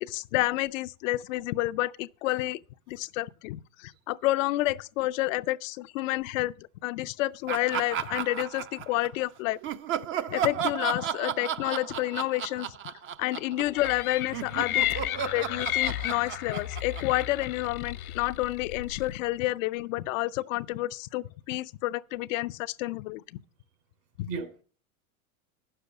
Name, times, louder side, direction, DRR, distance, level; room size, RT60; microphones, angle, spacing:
voice 1, 0.0-2.6 2.9-9.6 10.3-12.9 13.2-14.8 15.2-23.2 24.2-24.3, left 18 dB, 65° left, 0.6 m, -29 dB
Laughter, 7.5-9.2 9.6-14.0 14.3-17.9, right 9 dB, 30° right, 0.5 m, -34 dB
sound 1, 13.7-19.2, left 14 dB, 85° left, 1.1 m, -33 dB
voice 2, 24.3-24.6, right 4 dB, 60° right, 3.3 m, -38 dB
9.4 x 6.8 x 7.0 m
hypercardioid pair, 110°, 43 cm